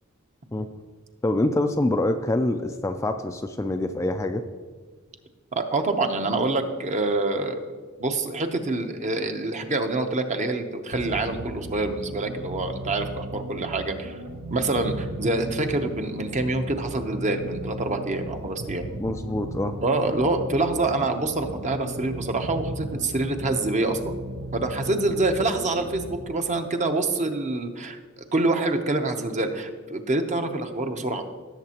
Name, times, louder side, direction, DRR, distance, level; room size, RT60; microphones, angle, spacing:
voice 1, 1.2-4.4 19.0-19.8, left 1 dB, 15° left, 6 dB, 0.3 m, -25 dB
voice 2, 5.5-14.2 14.5-18.8 19.8-24.1 24.5-28.0 28.3-31.2, right 2 dB, 35° right, 6 dB, 0.8 m, -26 dB
sound 1, 10.9-26.3, right 1 dB, 80° right, 0.8 m, -36 dB
17.0 x 7.1 x 2.9 m, 1.5 s
head